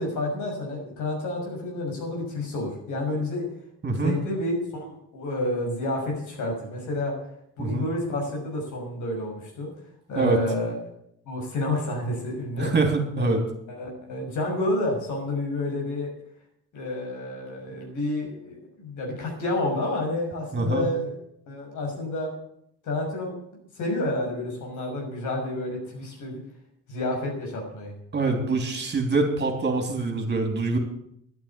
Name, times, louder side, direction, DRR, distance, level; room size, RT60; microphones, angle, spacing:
voice 1, 0.0-3.4 3.9-7.1 7.6-9.7 10.1-10.8 11.2-12.7 13.2-13.3 13.7-16.1 16.7-21.2 21.5-22.3 22.8-23.3 23.7-26.4 26.9-27.9, left 1 dB, 75° left, 0 dB, 6.3 m, -29 dB
voice 2, 12.6-13.4 20.5-20.9 28.1-30.8, right 3 dB, 35° right, 4 dB, 3.3 m, -24 dB
11.5 x 8.9 x 9.7 m, 0.73 s
cardioid pair, 90°, 30 cm